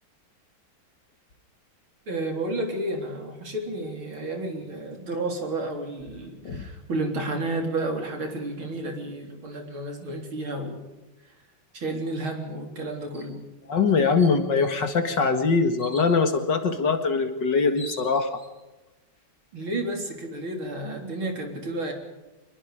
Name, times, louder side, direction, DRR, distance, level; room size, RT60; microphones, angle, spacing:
voice 1, 2.1-10.8 11.7-13.4 19.5-21.9, right 2 dB, 65° right, 3 dB, 4.5 m, -31 dB
sound 1, 13.1-13.3 13.8-13.9 14.2-14.8 15.8-16.1 17.2-17.3 17.6-18.5, left 1 dB, 5° right, 6.3 m, -43 dB
voice 2, 13.7-18.4, left 4 dB, 55° left, 7 dB, 2.4 m, -22 dB
26.0 x 21.5 x 5.0 m, 1.1 s
omnidirectional pair, 2.4 m